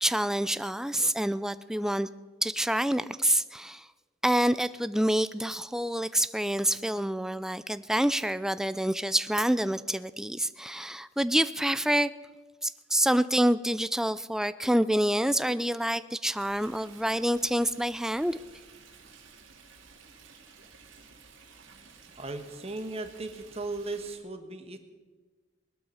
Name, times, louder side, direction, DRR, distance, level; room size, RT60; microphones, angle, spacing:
voice 1, 0.0-2.1 2.4-3.9 4.2-12.1 12.6-18.4, right 1 dB, 5° right, 14 dB, 0.4 m, -27 dB
Stream, 16.3-24.2, right 5 dB, 70° right, 2.5 m, -53 dB
voice 2, 22.1-24.8, right 2 dB, 30° right, 7 dB, 1.4 m, -37 dB
20.0 x 12.0 x 5.6 m, 1.3 s
head